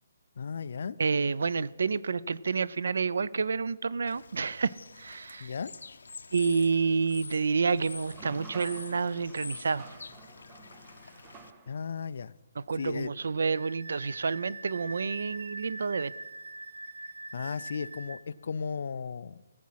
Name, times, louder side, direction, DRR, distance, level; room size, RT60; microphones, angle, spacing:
voice 1, 0.4-1.0 5.4-5.7 11.7-12.3 12.8-13.1 17.3-19.4, left 6 dB, 45° left, 0.3 m, -35 dB
voice 2, 1.0-5.5 6.3-9.9 12.6-16.1, right 5 dB, 60° right, 0.4 m, -29 dB
Bird / Water, 4.1-11.5, left 4 dB, 90° left, 0.6 m, -47 dB
sound 1, 8.1-12.0, right 5 dB, 10° right, 0.5 m, -51 dB
Wind instrument woodwind instrument, 13.5-18.2, right 2 dB, 90° right, 0.8 m, -43 dB
16.5 x 7.4 x 5.7 m
hypercardioid pair, 180°, 0 cm